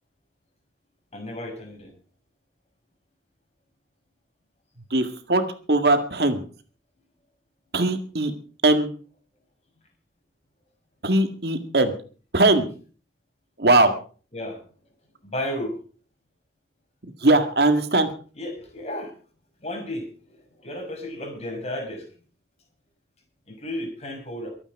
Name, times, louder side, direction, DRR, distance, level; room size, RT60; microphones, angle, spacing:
voice 1, 1.1-1.9 14.3-14.6 15.2-15.7 18.3-19.1 19.6-22.1 23.5-24.5, left 1 dB, 35° left, 3 dB, 6.0 m, -33 dB
voice 2, 4.9-5.4 5.7-6.4 7.7-8.3 8.6-8.9 11.0-11.9 12.3-12.7 13.6-13.9 17.2-18.1, right 2 dB, 65° right, 7 dB, 1.9 m, -20 dB
24.0 x 9.0 x 4.8 m, 0.40 s
head